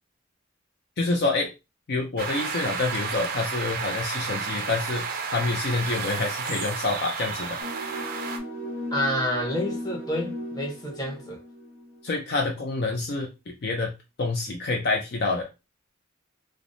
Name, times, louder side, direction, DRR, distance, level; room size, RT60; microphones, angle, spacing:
voice 1, 1.0-1.5 1.9-7.6 12.0-13.9 14.2-15.5, left 3 dB, 50° left, 0.4 m, -27 dB
sound 1, 2.2-8.4, right 5 dB, 45° right, 0.4 m, -32 dB
sound 2, 7.6-12.1, equal, 70° left, 1.2 m, -36 dB
voice 2, 8.9-11.4, left 1 dB, 20° left, 0.9 m, -28 dB
3.3 x 2.0 x 2.6 m
head